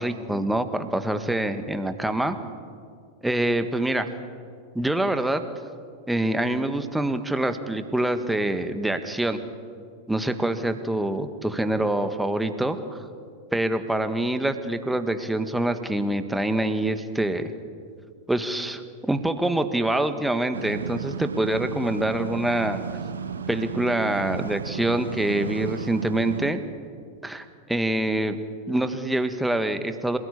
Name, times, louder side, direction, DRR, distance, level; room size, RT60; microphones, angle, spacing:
voice 1, 0.0-2.4 3.2-4.1 4.7-5.4 6.1-9.4 10.1-13.1 13.5-17.5 18.3-22.8 23.5-26.6 27.2-28.4 28.7-30.2, right 1 dB, 5° right, 8 dB, 1.7 m, -25 dB
sound 1, 20.5-26.5, right 6 dB, 70° right, 1.3 m, -34 dB
27.0 x 18.0 x 8.6 m, 2.1 s
figure-of-eight pair, 90°, 0 cm